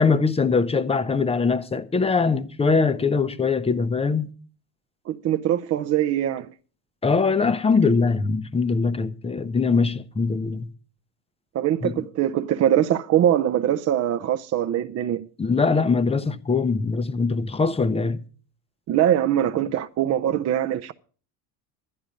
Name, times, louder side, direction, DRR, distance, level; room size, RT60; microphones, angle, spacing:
voice 1, 0.0-4.3 7.0-10.7 11.8-12.0 15.4-18.2, left 4 dB, 15° left, 0.6 m, -22 dB
voice 2, 5.1-6.5 11.5-15.3 18.9-20.9, right 11 dB, 35° right, 0.5 m, -22 dB
11.0 x 10.5 x 5.1 m
cardioid pair, 130°, 44 cm